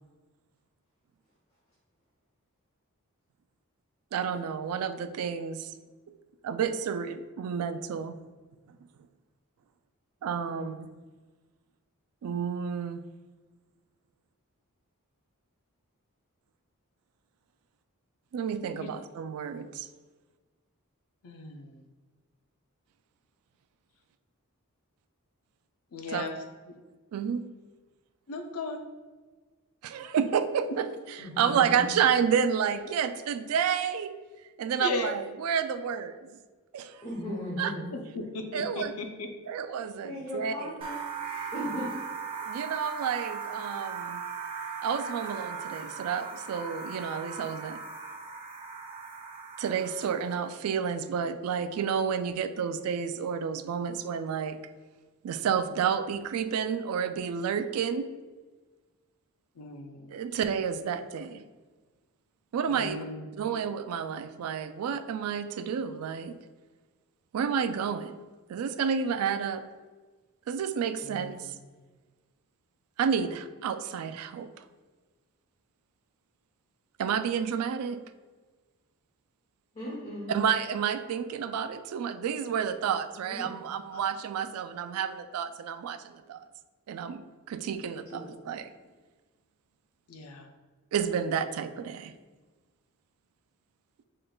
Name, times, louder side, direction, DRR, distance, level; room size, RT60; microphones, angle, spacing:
voice 1, 4.1-5.7 6.4-8.2 10.2-10.9 12.2-13.0 18.3-19.9 26.1-26.2 27.1-27.5 29.8-34.2 34.6-36.3 36.7-37.0 37.6-37.7 38.5-38.9 39.5-40.7 42.4-44.2 44.8-47.8 49.6-54.6 55.2-58.1 60.1-61.4 62.5-63.0 63.4-66.3 67.3-68.2 68.5-69.6 70.5-71.6 73.0-74.6 77.0-78.0 80.3-86.5 86.9-88.7 90.9-92.1, right 7 dB, 75° right, 10 dB, 0.3 m, -30 dB
voice 2, 21.2-21.8 25.9-26.4 28.3-28.8 34.8-35.1 37.9-39.3 59.6-60.1 62.7-63.4 71.0-71.6 90.1-90.5, left 2 dB, 80° left, 5 dB, 0.6 m, -37 dB
voice 3, 31.2-31.9 37.0-37.9 40.0-40.9 41.5-41.9 79.7-80.3 83.3-83.5 83.9-84.0 88.1-88.3, equal, 25° left, -7 dB, 0.9 m, -37 dB
sound 1, 40.8-50.5, right 5 dB, 25° right, 0.6 m, -38 dB
5.1 x 3.7 x 2.3 m, 1.3 s
head